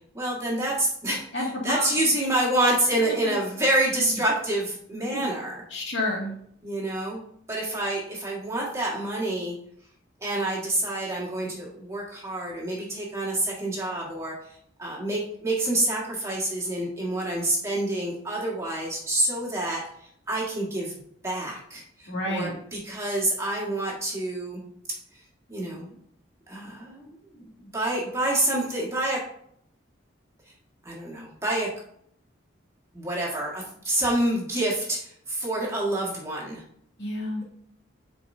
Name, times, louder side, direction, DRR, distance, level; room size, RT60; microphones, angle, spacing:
voice 1, 0.1-1.2 1.6-5.6 6.6-7.2 7.5-9.6 10.2-14.3 14.8-19.8 20.3-21.0 21.2-24.6 25.5-26.0 26.5-29.2 30.8-31.7 32.9-36.6, right 1 dB, 15° right, -4 dB, 1.8 m, -27 dB
voice 2, 1.3-2.0 3.0-3.3 3.9-4.2 5.1-5.2 5.7-6.3 22.1-22.5 37.0-37.4, left 1 dB, 65° left, -3 dB, 2.2 m, -30 dB
10.0 x 4.7 x 2.7 m, 0.68 s
head